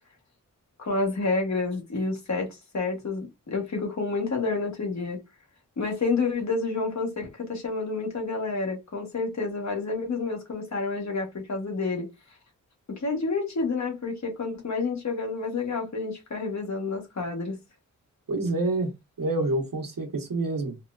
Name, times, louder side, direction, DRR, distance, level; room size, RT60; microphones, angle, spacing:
voice 1, 0.8-5.2 5.8-12.1 12.9-17.6, left 3 dB, 55° left, 1.2 m, -29 dB
voice 2, 18.3-18.9 19.2-20.8, right 2 dB, 80° right, 1.0 m, -27 dB
4.1 x 2.1 x 2.4 m
wide cardioid pair, 125°, 33 cm